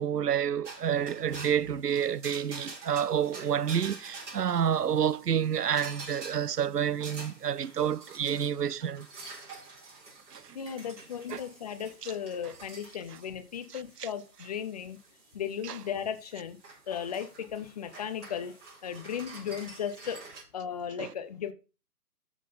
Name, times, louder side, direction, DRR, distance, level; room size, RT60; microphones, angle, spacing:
voice 1, 0.0-9.3 10.3-10.6 11.3-11.4 12.0-12.1 13.7-14.1 15.6-15.8 21.0-21.1, right 8 dB, 75° right, 0.7 m, -29 dB
sound 1, 0.6-20.4, right 3 dB, 50° right, 4.7 m, -48 dB
voice 2, 10.5-15.0 15.3-16.6 16.9-18.6 18.8-20.2 20.5-21.5, left 8 dB, 25° left, 0.8 m, -36 dB
12.0 x 5.0 x 3.9 m
figure-of-eight pair, 140°, 47 cm